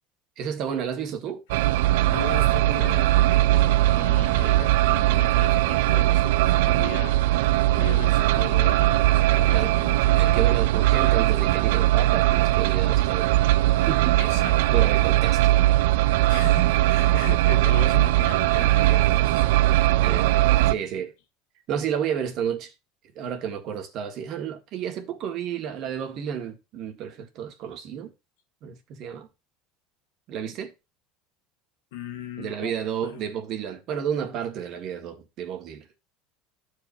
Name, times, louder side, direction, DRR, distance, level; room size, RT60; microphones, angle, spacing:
voice 1, 0.4-1.4 9.5-9.7 10.2-13.4 13.9-14.2 14.7-15.4 20.0-20.3 20.7-21.1 21.7-22.7 23.1-28.1 28.6-29.3 30.3-30.7 32.4-35.8, right 8 dB, 55° right, 1.8 m, -31 dB
sound 1, 1.5-20.7, right 15 dB, 85° right, 0.4 m, -20 dB
voice 2, 2.1-7.2 7.7-10.4 14.2-14.6 16.3-19.4 19.9-20.1 31.9-32.8 33.0-33.2, left 10 dB, 85° left, 1.3 m, -38 dB
14.0 x 5.0 x 2.7 m
supercardioid pair, 120°, 0 cm